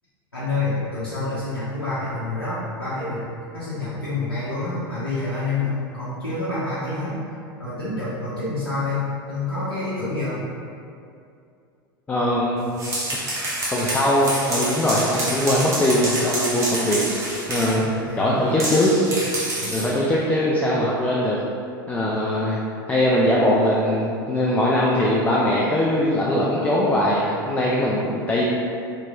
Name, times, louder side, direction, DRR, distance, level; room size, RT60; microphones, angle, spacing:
voice 1, 0.3-3.3 3.5-9.0 9.2-10.4 17.6-18.5 19.5-19.8 22.1-22.2, left 2 dB, 90° left, -11 dB, 0.6 m, -28 dB
voice 2, 12.1-12.7 13.7-17.2 17.5-17.9 18.2-18.9 19.7-21.4 21.9-22.6 22.9-28.4, left 1 dB, 15° left, -5 dB, 0.3 m, -21 dB
sound 1, 12.6-17.8 18.6-20.0, right 1 dB, 25° right, 0.8 m, -28 dB
2.9 x 2.9 x 2.3 m, 2.5 s
figure-of-eight pair, 80°, 12 cm